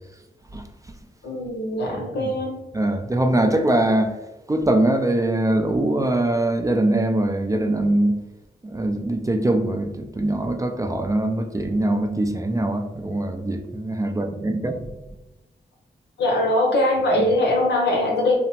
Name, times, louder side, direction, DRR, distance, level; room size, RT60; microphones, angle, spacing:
voice 1, 1.2-2.6 16.2-18.4, left 1 dB, 80° left, 0 dB, 0.8 m, -21 dB
voice 2, 2.7-4.2 4.5-8.2 8.6-14.9, right 1 dB, 20° right, 5 dB, 0.3 m, -22 dB
2.8 x 2.1 x 2.8 m, 1.0 s
cardioid pair, 45°, 18 cm